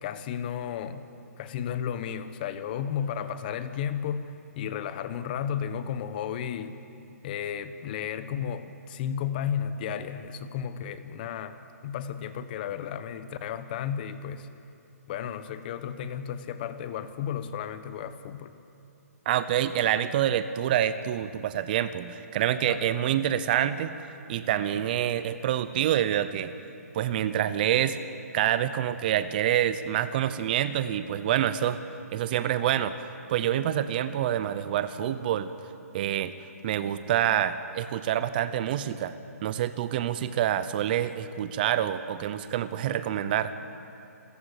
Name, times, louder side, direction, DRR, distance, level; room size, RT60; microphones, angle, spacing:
voice 1, 0.0-1.0 1.4-6.8 7.2-11.6 11.8-14.5 15.1-18.5 22.6-23.0, left 8 dB, 35° left, 12 dB, 1.1 m, -33 dB
voice 2, 19.3-23.9 24.3-26.5 26.9-28.0 28.3-31.8 32.1-32.9 33.3-35.5 35.9-36.3 36.6-39.2 39.4-43.5, right 11 dB, 35° right, 13 dB, 0.8 m, -27 dB
28.0 x 14.5 x 8.3 m, 2.7 s
hypercardioid pair, 155°, 9 cm